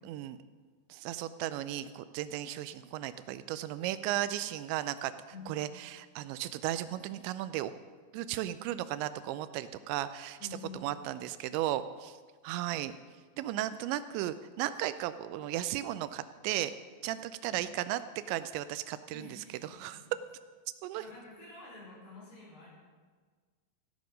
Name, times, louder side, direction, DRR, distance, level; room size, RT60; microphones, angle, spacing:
voice 1, 0.1-0.4 0.9-5.1 5.5-7.7 8.1-10.4 10.7-12.2 12.4-12.9 13.4-16.7 17.0-18.0 18.3-20.0 20.8-21.0, right 13 dB, 85° right, 13 dB, 2.8 m, -35 dB
voice 2, 5.3-5.7 10.4-11.0 17.5-17.6 19.1-20.1 21.0-22.8, left 3 dB, 60° left, -5 dB, 6.7 m, -49 dB
15.5 x 10.5 x 5.2 m, 1.5 s
omnidirectional pair, 5.2 m